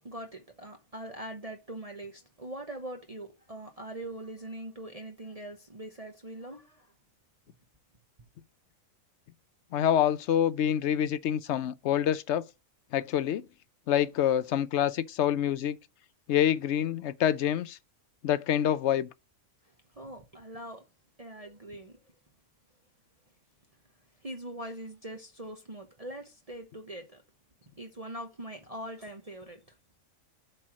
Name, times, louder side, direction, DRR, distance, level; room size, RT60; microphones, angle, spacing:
voice 1, 0.0-6.9 19.6-20.8 21.2-22.0 24.2-27.2 27.8-29.8, right 1 dB, 30° right, 1.0 m, -42 dB
voice 2, 9.7-12.4 12.9-13.5 13.9-15.8 16.3-17.8 18.2-19.1, left 10 dB, 65° left, 0.8 m, -26 dB
7.5 x 4.6 x 6.1 m
omnidirectional pair, 1.4 m